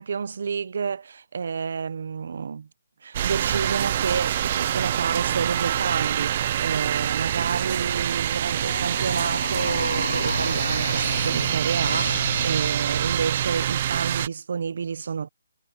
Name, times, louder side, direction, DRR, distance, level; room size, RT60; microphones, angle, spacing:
voice 1, 0.0-2.7 3.0-15.3, right 6 dB, 60° right, 0.8 m, -29 dB
sound 1, 3.1-14.3, right 11 dB, 35° right, 0.3 m, -25 dB
sound 2, 8.6-13.1, left 3 dB, 85° left, 1.0 m, -32 dB
hypercardioid pair, 155°, 0 cm